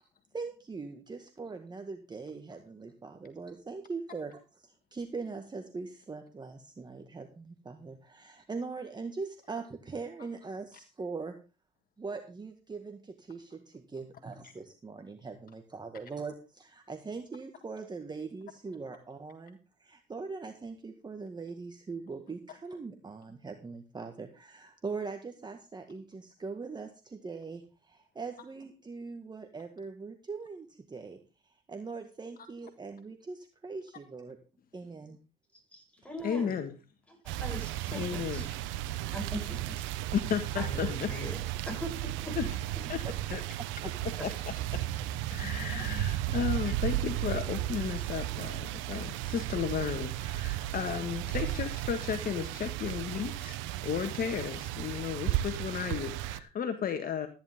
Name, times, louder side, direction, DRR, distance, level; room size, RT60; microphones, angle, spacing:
voice 1, 0.3-11.3 12.0-31.2 31.4-34.4 34.7-35.2 37.9-38.0 43.0-43.1 43.8-43.9 46.4-46.6, right 4 dB, 20° right, 5 dB, 1.7 m, -41 dB
voice 2, 35.5-36.6 37.1-38.5 39.1-39.8 40.6-42.3 44.2-44.3, left 1 dB, 5° left, 1 dB, 8.0 m, -41 dB
voice 3, 36.2-36.7 37.9-38.4 40.1-41.2 42.4-42.5 42.9-43.4 44.2-44.8 45.3-57.3, left 8 dB, 50° left, 7 dB, 1.6 m, -34 dB
sound 1, 37.3-56.4, right 14 dB, 85° right, 1.0 m, -34 dB
14.0 x 10.5 x 3.6 m, 0.32 s
cardioid pair, 105°, 19 cm